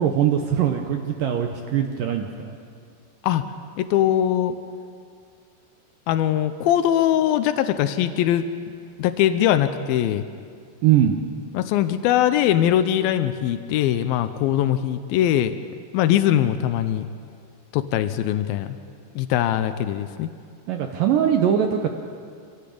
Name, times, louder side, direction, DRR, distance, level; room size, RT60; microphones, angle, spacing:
voice 1, 0.0-2.6 10.8-11.2 20.7-21.9, right 9 dB, 75° right, 4 dB, 2.0 m, -21 dB
voice 2, 3.8-4.6 6.1-8.4 9.0-10.2 11.5-15.6 15.9-17.1 17.7-18.8 19.2-20.3, left 11 dB, 90° left, 11 dB, 2.1 m, -21 dB
24.5 x 17.0 x 8.6 m, 2.2 s
omnidirectional pair, 5.1 m